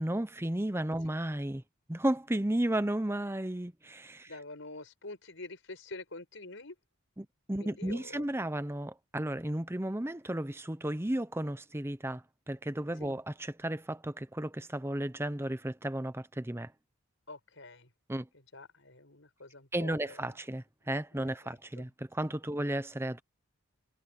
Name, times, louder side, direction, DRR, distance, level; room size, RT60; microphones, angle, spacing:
voice 1, 0.0-1.6 1.9-4.3 7.2-16.7 18.1-18.3 19.7-23.2, right 1 dB, 10° right, 0.7 m, -34 dB
voice 2, 4.3-6.7 7.6-8.2 13.0-13.2 17.3-17.9 18.3-20.4 21.1-21.9, left 2 dB, 60° left, 6.7 m, -47 dB
head